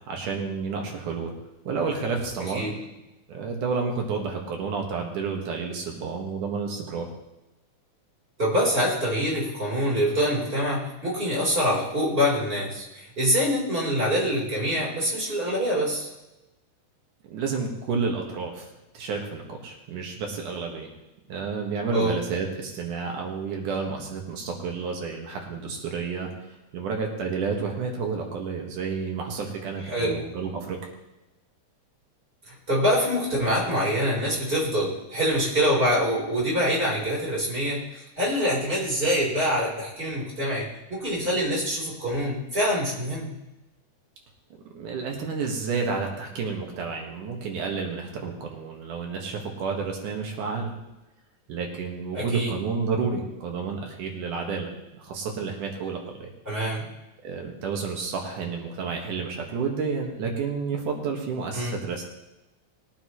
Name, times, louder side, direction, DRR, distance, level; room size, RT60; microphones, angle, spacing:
voice 1, 0.1-1.3 1.7-2.7 3.3-7.1 17.2-20.9 21.3-26.3 26.7-30.8 44.6-50.7 51.5-54.7 55.0-56.3 57.2-62.0, right 5 dB, 80° right, 1 dB, 3.2 m, -30 dB
voice 2, 8.4-16.1 21.9-22.1 29.9-30.2 32.5-43.3 52.1-52.5 56.5-56.8 61.5-61.8, equal, 15° right, -5 dB, 4.0 m, -25 dB
21.0 x 9.2 x 3.1 m, 1.0 s
omnidirectional pair, 3.5 m